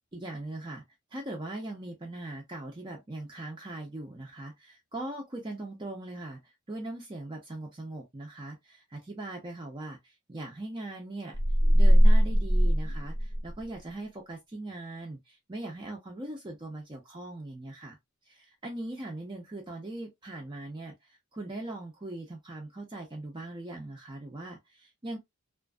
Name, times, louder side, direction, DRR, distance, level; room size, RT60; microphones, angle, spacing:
voice 1, 0.1-0.8 1.1-11.4 11.7-18.0 18.3-25.2, right 2 dB, 20° right, 0.5 m, -40 dB
sound 1, 11.3-13.7, equal, 85° left, 1.1 m, -21 dB
2.5 x 2.4 x 2.2 m
head